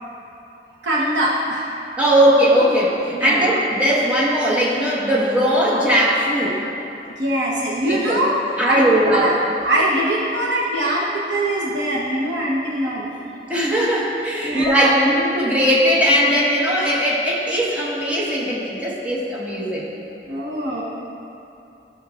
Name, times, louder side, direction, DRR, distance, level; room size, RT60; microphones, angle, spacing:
voice 1, 0.8-1.8 3.1-3.5 7.1-8.4 8.6-9.4 9.6-13.1 14.4-15.0 20.3-20.8, right 1 dB, 80° right, -5 dB, 1.1 m, -22 dB
voice 2, 2.0-6.6 7.9-8.2 8.6-9.3 13.5-19.9, equal, 10° right, -7 dB, 1.4 m, -19 dB
15.0 x 6.3 x 2.5 m, 2.8 s
head